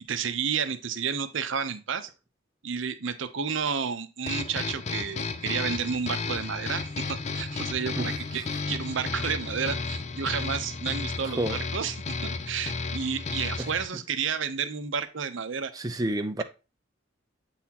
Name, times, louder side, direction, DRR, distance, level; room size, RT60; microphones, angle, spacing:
voice 1, 0.1-2.1 2.6-12.0 12.2-15.7, right 6 dB, 70° right, 0.6 m, -31 dB
sound 1, 4.3-13.9, left 4 dB, 35° left, 0.4 m, -33 dB
voice 2, 11.2-11.6 13.6-13.7 15.7-16.4, right 1 dB, 20° right, 0.5 m, -29 dB
8.3 x 4.1 x 2.9 m
head